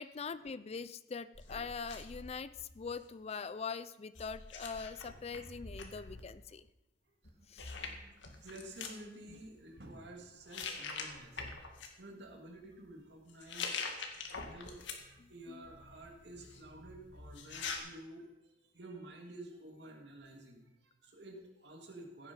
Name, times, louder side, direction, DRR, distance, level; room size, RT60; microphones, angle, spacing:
voice 1, 0.0-6.7 7.5-7.7 15.2-15.6, left 5 dB, 35° left, 16 dB, 0.4 m, -43 dB
sound 1, 1.3-3.2 4.1-6.2 7.2-7.3 7.6-9.0 9.7-10.1 10.5-11.9 13.3-15.2 15.6-17.8, left 5 dB, 80° left, 1.9 m, -44 dB
voice 2, 7.4-11.6 12.0-13.8 14.4-22.3, right 1 dB, 65° right, 2 dB, 2.4 m, -51 dB
15.5 x 9.1 x 5.5 m, 0.97 s
head